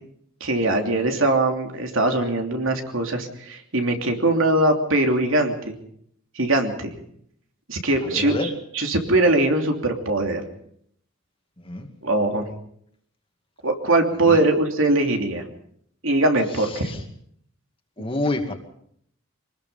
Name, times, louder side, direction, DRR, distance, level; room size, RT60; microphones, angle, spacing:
voice 1, 0.4-5.8 6.3-6.9 7.7-8.5 8.7-10.4 12.0-12.5 13.6-15.4 16.0-16.9, right 2 dB, 70° right, 3 dB, 3.0 m, -21 dB
voice 2, 8.0-8.5 11.6-11.9 14.2-14.5 16.5-17.0 18.0-18.5, left 2 dB, 25° left, 4 dB, 2.3 m, -29 dB
24.5 x 19.5 x 5.6 m, 0.67 s
head